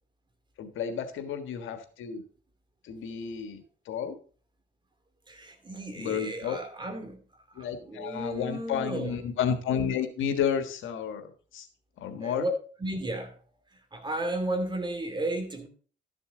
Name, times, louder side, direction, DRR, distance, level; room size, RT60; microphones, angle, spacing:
voice 1, 0.6-2.2 2.8-4.1 6.0-6.6 7.6-11.7 12.0-12.4, left 8 dB, 80° left, 1.5 m, -31 dB
voice 2, 5.3-7.2 7.5-9.2 12.2-12.5 12.8-13.3 13.9-15.7, right 1 dB, 25° right, 2.7 m, -33 dB
13.0 x 7.0 x 3.8 m
cardioid pair, 90°, 20 cm